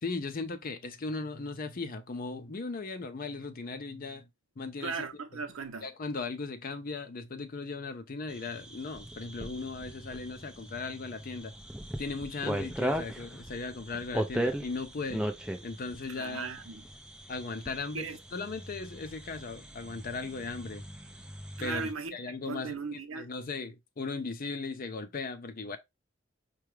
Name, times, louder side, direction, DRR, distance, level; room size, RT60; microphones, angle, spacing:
voice 1, 0.0-4.3 4.6-4.9 5.8-11.5 12.0-15.3 15.6-16.5 17.3-20.8 21.6-25.8, left 3 dB, 45° left, 0.5 m, -37 dB
voice 2, 4.8-5.9 16.1-16.8 17.9-18.2 21.6-23.3, right 4 dB, 80° right, 0.7 m, -38 dB
Crickets at night far from Highway, 8.3-21.9, right 1 dB, 5° right, 0.4 m, -38 dB
4.7 x 2.3 x 3.1 m
head